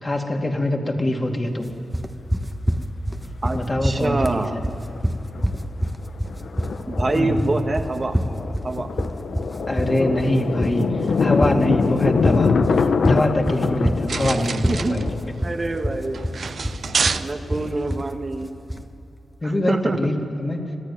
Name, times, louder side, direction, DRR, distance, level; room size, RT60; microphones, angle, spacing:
voice 1, 0.0-1.7 3.5-4.6 7.1-7.6 9.7-15.0 19.4-20.7, left 1 dB, 30° left, 2 dB, 2.6 m, -24 dB
Thunder, 1.7-1.8 3.1-3.9 4.2-4.3 4.7-5.0 5.3-17.7, left 5 dB, 70° left, 1.1 m, -25 dB
sound 1, 1.9-18.9, equal, 5° right, 1.2 m, -26 dB
voice 2, 3.4-4.6 6.9-8.2 8.6-8.9 14.7-15.0 15.4-16.2 17.2-18.5 19.4-20.1, right 2 dB, 35° right, 4 dB, 1.5 m, -25 dB
sound 2, 14.1-17.9, right 5 dB, 60° right, 0.7 m, -28 dB
26.0 x 14.5 x 9.8 m, 2.9 s
cardioid pair, 75°, 0 cm